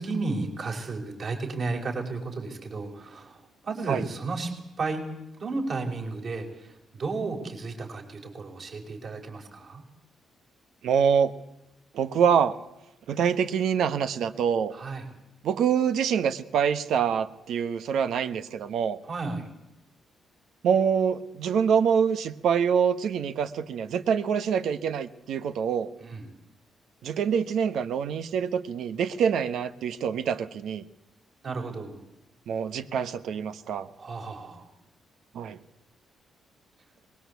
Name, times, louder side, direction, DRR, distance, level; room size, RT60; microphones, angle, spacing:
voice 1, 0.0-4.5 4.8-9.8 14.7-15.1 19.0-19.5 26.0-26.3 31.4-32.0 34.0-34.7, right 3 dB, 45° right, 2 dB, 5.5 m, -33 dB
voice 2, 10.8-11.3 11.9-12.6 13.1-14.7 15.4-19.0 20.6-25.9 27.0-30.8 32.5-33.9 35.3-35.6, right 7 dB, 80° right, 12 dB, 1.2 m, -25 dB
23.5 x 21.0 x 8.3 m, 0.91 s
cardioid pair, 140°, 0 cm